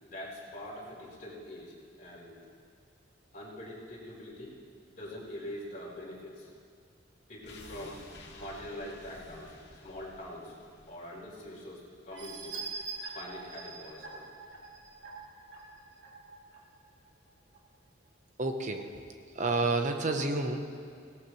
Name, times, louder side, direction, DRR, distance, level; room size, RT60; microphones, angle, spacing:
voice 1, 0.0-2.4 3.3-4.5 4.9-6.5 7.3-8.0 8.3-9.5 9.8-10.5 10.9-12.6 13.1-14.3, left 1 dB, 45° left, -6 dB, 4.2 m, -44 dB
sound 1, 7.4-12.4 12.7-12.8, left 2 dB, 65° left, 2.1 m, -53 dB
sound 2, 12.1-16.6 17.1-17.2 17.5-17.6, right 4 dB, 70° right, 2.8 m, -43 dB
voice 2, 18.4-18.9 19.3-20.6, right 3 dB, 40° right, 5 dB, 1.1 m, -29 dB
18.5 x 18.0 x 3.3 m, 2.2 s
head